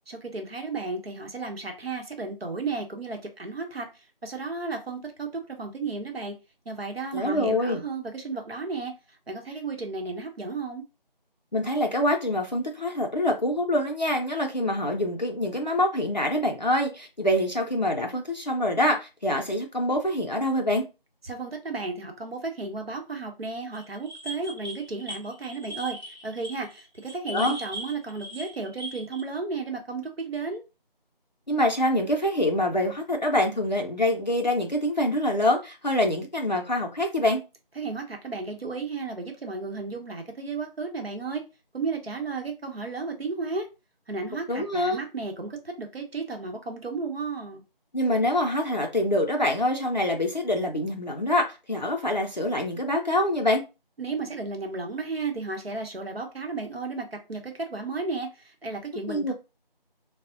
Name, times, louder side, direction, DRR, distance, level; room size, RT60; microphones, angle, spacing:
voice 1, 0.3-3.9 4.2-6.3 6.7-8.9 9.3-10.8 21.2-30.6 37.8-41.4 41.7-43.7 44.1-47.6 54.0-59.3, right 4 dB, 90° right, 0.8 m, -33 dB
voice 2, 7.1-7.8 11.5-20.9 27.3-27.6 31.5-37.4 44.5-45.0 47.9-53.6 59.1-59.3, left 1 dB, 50° left, 0.4 m, -25 dB
sound 1, 23.7-29.2, equal, 50° right, 0.6 m, -39 dB
3.5 x 2.0 x 2.4 m
figure-of-eight pair, 170°, 29 cm